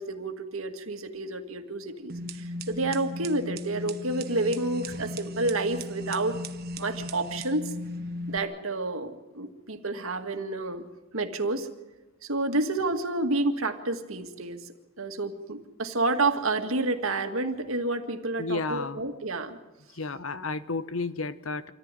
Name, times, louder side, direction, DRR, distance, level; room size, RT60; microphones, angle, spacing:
voice 1, 0.0-6.4 6.8-7.7 8.3-10.8 11.1-11.7 12.2-14.6 15.0-19.6, right 2 dB, 70° right, 6 dB, 2.0 m, -29 dB
sound 1, 2.1-8.4, left 1 dB, 45° right, 1.3 m, -37 dB
voice 2, 18.4-19.0 19.9-21.7, left 3 dB, 70° left, 13 dB, 1.1 m, -32 dB
26.0 x 14.5 x 9.9 m, 1.1 s
head